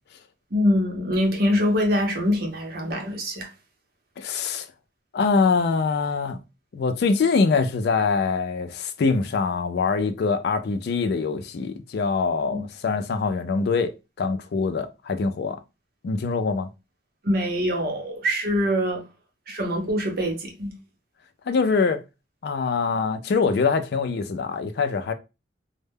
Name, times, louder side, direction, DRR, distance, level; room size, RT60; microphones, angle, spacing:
voice 1, 0.5-3.5 12.5-12.6 17.2-19.1 19.5-20.8, equal, 55° right, 0.7 m, -24 dB
voice 2, 4.2-4.7 5.1-6.4 6.7-13.9 14.2-15.6 16.0-16.7 21.5-22.0 22.4-25.1, left 4 dB, 60° left, 0.4 m, -24 dB
2.1 x 2.1 x 3.3 m
head